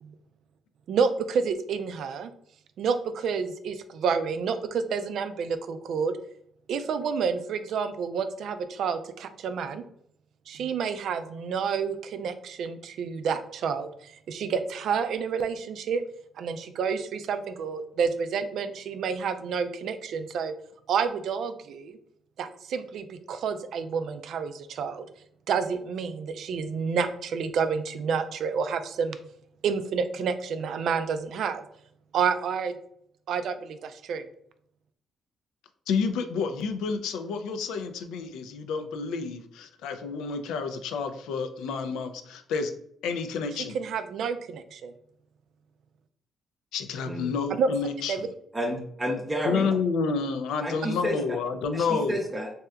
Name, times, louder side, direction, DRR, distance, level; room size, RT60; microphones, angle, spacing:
voice 1, 0.9-2.3 2.8-6.1 6.7-9.8 10.5-16.0 16.4-20.5 20.9-22.0 22.4-25.1 25.5-29.2 29.6-31.6 32.1-32.8 33.3-34.2 43.7-44.9 47.6-47.7 48.1-48.3, right 6 dB, 70° right, 10 dB, 0.3 m, -29 dB
voice 2, 35.9-42.7 43.0-43.7 46.7-48.3 49.4-52.2, left 5 dB, 90° left, 7 dB, 0.3 m, -29 dB
voice 3, 48.5-49.7 50.6-51.2 51.7-52.5, equal, 20° right, 0 dB, 0.6 m, -30 dB
3.3 x 2.7 x 2.3 m, 0.69 s
cardioid pair, 90°, 0 cm